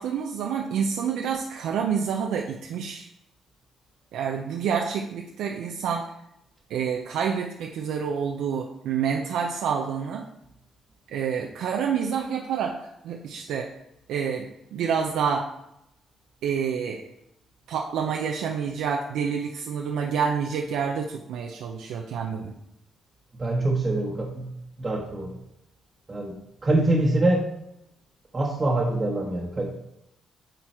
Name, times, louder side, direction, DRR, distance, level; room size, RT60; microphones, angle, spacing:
voice 1, 0.0-3.1 4.1-6.1 6.7-10.3 11.1-13.7 14.1-15.5 16.4-17.0 17.7-22.5, right 7 dB, 85° right, 1 dB, 0.6 m, -28 dB
voice 2, 23.4-24.5 24.8-25.4 26.1-27.4 28.3-29.7, right 2 dB, 25° right, -3 dB, 1.2 m, -24 dB
9.1 x 4.0 x 4.4 m, 0.82 s
cardioid pair, 90°, 0 cm